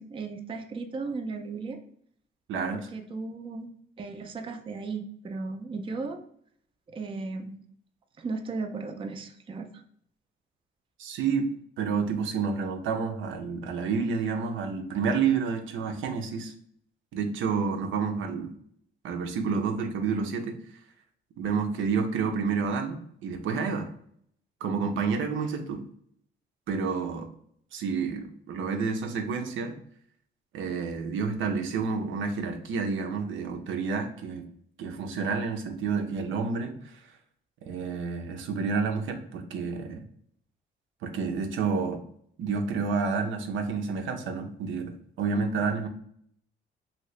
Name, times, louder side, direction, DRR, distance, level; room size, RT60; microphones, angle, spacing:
voice 1, 0.0-1.8 2.7-3.7 4.0-6.2 6.9-7.6 8.2-9.8, right 4 dB, 25° right, 6 dB, 0.4 m, -36 dB
voice 2, 11.0-11.5 11.8-16.5 17.1-18.5 19.0-20.6 21.4-23.9 24.6-25.8 26.7-27.3 27.7-29.8 30.5-34.4 34.8-37.0 37.6-40.0 41.0-42.0 42.4-45.9, right 5 dB, 80° right, 5 dB, 0.6 m, -29 dB
2.8 x 2.8 x 3.1 m, 0.65 s
cardioid pair, 90°, 20 cm